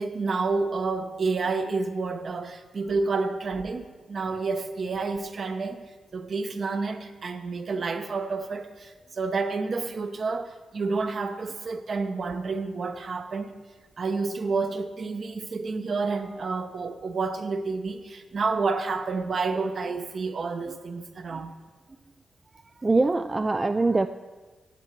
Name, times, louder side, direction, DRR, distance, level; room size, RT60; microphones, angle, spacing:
voice 1, 0.0-5.8 6.1-13.5 14.0-21.5, right 4 dB, 55° right, 8 dB, 0.9 m, -29 dB
voice 2, 22.8-24.1, right 3 dB, 25° right, 9 dB, 0.4 m, -23 dB
15.5 x 8.3 x 4.5 m, 1.4 s
cardioid pair, 75°, 0 cm